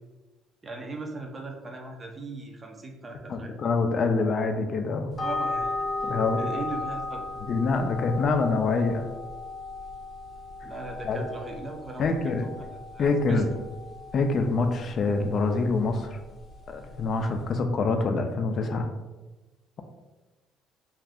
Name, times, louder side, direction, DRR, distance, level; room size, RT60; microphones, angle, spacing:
voice 1, 0.6-3.5 5.2-7.4 10.6-13.6, right 2 dB, 25° right, 3 dB, 0.5 m, -39 dB
voice 2, 3.3-5.2 6.0-6.4 7.5-9.0 11.1-11.2 12.0-12.5 13.0-13.5 14.1-16.2 16.7-18.9, left 3 dB, 50° left, 5 dB, 0.3 m, -25 dB
sound 1, 5.1-17.5, left 3 dB, 15° left, 0.6 m, -36 dB
2.4 x 2.4 x 3.4 m, 1.2 s
cardioid pair, 105°, 0 cm